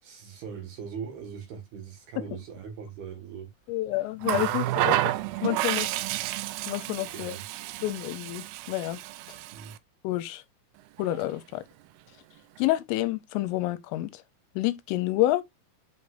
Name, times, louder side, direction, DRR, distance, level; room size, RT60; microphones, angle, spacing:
voice 1, 0.0-3.5 7.1-7.4 9.5-9.7, right 7 dB, 60° right, 3.0 m, -40 dB
voice 2, 3.7-5.1 5.4-6.0 6.7-7.4 7.8-9.0 10.0-10.4 11.0-11.6 12.6-14.2 14.6-15.4, left 16 dB, 85° left, 3.2 m, -28 dB
Water tap faucet, 4.2-9.8 11.0-11.2, right 15 dB, 85° right, 3.4 m, -30 dB
8.2 x 5.3 x 2.5 m
omnidirectional pair, 5.9 m